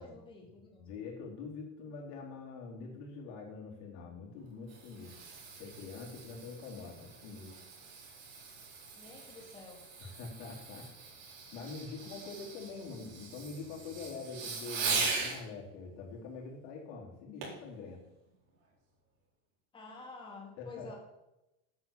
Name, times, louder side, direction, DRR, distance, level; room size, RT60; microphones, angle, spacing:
voice 1, 0.0-0.8 9.0-9.8 19.7-20.9, left 3 dB, 10° left, -2 dB, 2.3 m, -49 dB
voice 2, 0.8-5.2 5.6-7.5 10.0-10.9 11.5-18.0 20.6-21.0, left 4 dB, 60° left, -1 dB, 3.8 m, -45 dB
Fireworks, 4.4-15.4 17.4-17.7 18.3-18.4, right 4 dB, 60° right, 4.2 m, -40 dB
9.5 x 8.1 x 7.3 m, 0.94 s
cardioid pair, 180°, 40 cm